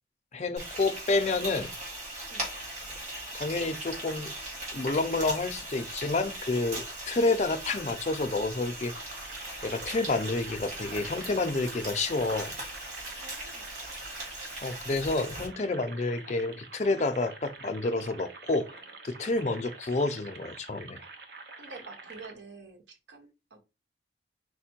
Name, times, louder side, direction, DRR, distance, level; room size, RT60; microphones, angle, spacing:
voice 1, 0.3-1.7 3.3-4.3 4.7-8.9 9.6-12.5 14.6-18.7 19.0-21.0, left 3 dB, 40° left, 0.5 m, -29 dB
Frying (food), 0.6-15.5, right 1 dB, 45° right, 2.2 m, -39 dB
sound 1, 8.9-22.3, right 3 dB, 65° right, 0.8 m, -47 dB
voice 2, 13.2-13.6 21.6-23.6, right 3 dB, 90° right, 1.2 m, -48 dB
5.0 x 2.1 x 4.4 m
head